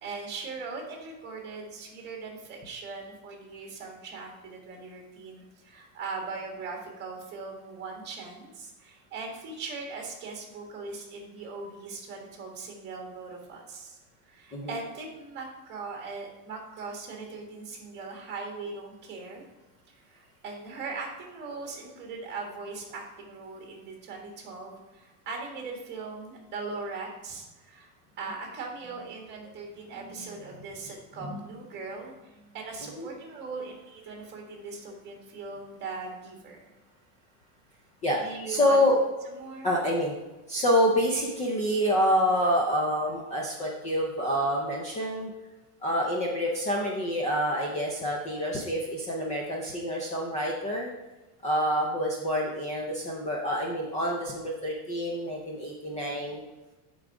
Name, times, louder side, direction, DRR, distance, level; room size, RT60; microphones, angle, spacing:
voice 1, 0.0-14.0 14.3-19.4 20.0-27.9 28.2-36.6 38.1-38.8 39.3-39.7, right 4 dB, 25° right, 0 dB, 1.7 m, -40 dB
voice 2, 38.5-39.0 39.6-40.2 40.5-45.3 45.8-50.9 51.4-56.4, equal, 15° left, -2 dB, 0.5 m, -27 dB
9.5 x 3.9 x 4.7 m, 1.1 s
supercardioid pair, 165°, 45 cm